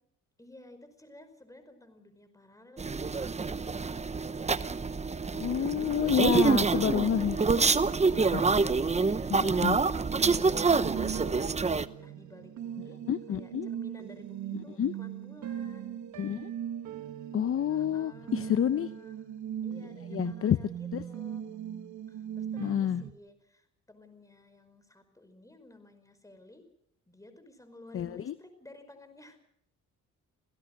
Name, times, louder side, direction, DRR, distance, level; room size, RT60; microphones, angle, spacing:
voice 1, 0.4-3.3 5.5-6.4 7.0-11.7 12.0-13.0 13.3-16.0 17.7-19.2 19.6-21.5 22.1-26.6 27.1-29.4, left 2 dB, 10° left, 9 dB, 5.2 m, -54 dB
sound 1, 2.8-11.9, right 4 dB, 20° right, 0.9 m, -27 dB
voice 2, 5.3-7.9 8.3-8.4 9.3-9.8 13.1-13.7 14.8-14.9 16.2-16.5 17.3-18.9 20.1-20.6 20.9-21.0 22.6-23.0 27.9-28.3, left 9 dB, 45° left, 13 dB, 0.8 m, -29 dB
sound 2, 10.1-23.1, right 9 dB, 70° right, 1.6 m, -39 dB
27.5 x 16.5 x 6.6 m, 0.71 s
cardioid pair, 90°, 30 cm